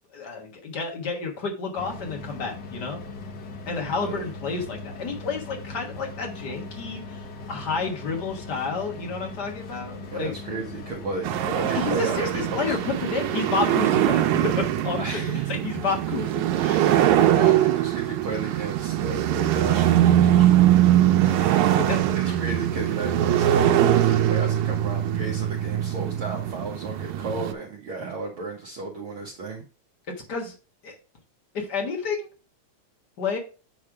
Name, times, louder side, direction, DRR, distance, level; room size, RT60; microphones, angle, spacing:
voice 1, 0.1-3.0 3.7-10.3 11.7-16.9 17.2-17.3 21.2-22.4 30.3-30.5 30.8-30.9 31.5-32.3 33.2-33.4, left 4 dB, 45° left, 1 dB, 1.5 m, -30 dB
sound 1, 1.8-15.1, left 3 dB, 60° left, 1.1 m, -39 dB
voice 2, 10.0-12.9 13.2-13.3 15.0-15.6 16.7-21.0 22.1-29.6, right 3 dB, 55° right, -2 dB, 1.6 m, -34 dB
sound 2, 11.2-27.5, right 12 dB, 85° right, 2.0 m, -22 dB
8.5 x 3.2 x 4.8 m, 0.35 s
omnidirectional pair, 3.4 m